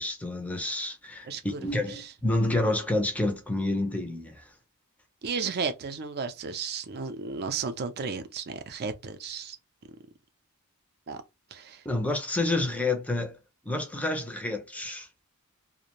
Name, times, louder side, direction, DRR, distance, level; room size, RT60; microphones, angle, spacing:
voice 1, 0.0-4.4 11.9-13.4 13.7-15.1, left 2 dB, 5° left, 0.5 m, -29 dB
voice 2, 1.2-2.1 5.2-9.6 11.1-11.2 11.5-11.8, right 5 dB, 45° right, 0.4 m, -34 dB
2.5 x 2.1 x 2.9 m
head